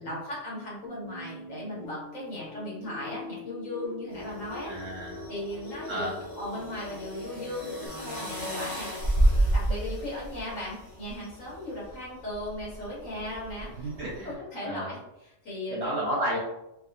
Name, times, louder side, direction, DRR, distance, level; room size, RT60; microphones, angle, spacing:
voice 1, 0.0-4.7 5.3-15.9, left 1 dB, 55° left, -6 dB, 1.6 m, -37 dB
sound 1, 0.8-7.9, left 1 dB, 20° right, 0.6 m, -44 dB
sound 2, 4.1-14.3, right 1 dB, 25° left, 0.8 m, -32 dB
voice 2, 4.6-5.3 5.9-6.2 13.8-14.9 15.7-16.4, right 1 dB, 55° right, -4 dB, 0.8 m, -32 dB
4.6 x 2.3 x 2.6 m, 0.90 s
omnidirectional pair, 1.7 m